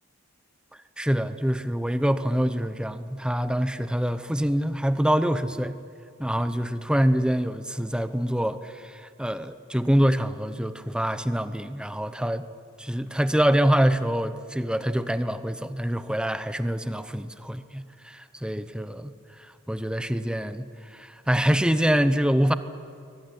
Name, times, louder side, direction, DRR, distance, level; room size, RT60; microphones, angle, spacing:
voice 1, 1.0-5.8 6.2-12.5 12.8-19.1 19.7-22.5, equal, 5° right, 11 dB, 0.9 m, -25 dB
23.0 x 19.0 x 9.9 m, 2.4 s
head